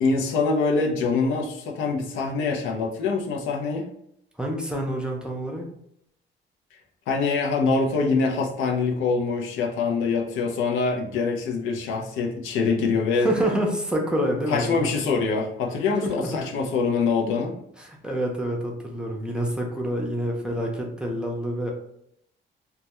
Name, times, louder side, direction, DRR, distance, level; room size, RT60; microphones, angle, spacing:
voice 1, 0.0-3.9 7.1-13.3 14.5-17.6, left 4 dB, 85° left, 0 dB, 0.5 m, -24 dB
voice 2, 4.4-5.7 13.2-14.9 16.0-16.4 17.8-21.7, equal, 5° right, -1 dB, 0.5 m, -27 dB
2.2 x 2.2 x 2.8 m, 0.73 s
cardioid pair, 90°, 20 cm